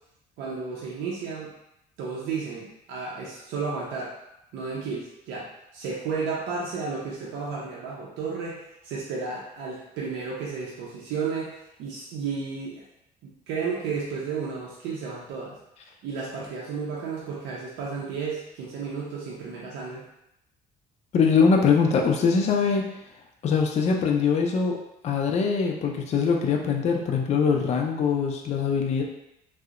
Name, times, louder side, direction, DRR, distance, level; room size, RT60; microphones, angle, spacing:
voice 1, 0.4-1.5 2.0-4.1 4.5-12.8 13.2-15.6 16.0-20.1, right 5 dB, 85° right, -4 dB, 0.5 m, -33 dB
voice 2, 21.1-22.9 23.4-24.8 25.0-29.0, left 5 dB, 40° left, 1 dB, 0.4 m, -22 dB
2.7 x 2.0 x 2.4 m, 0.84 s
cardioid pair, 110°, 17 cm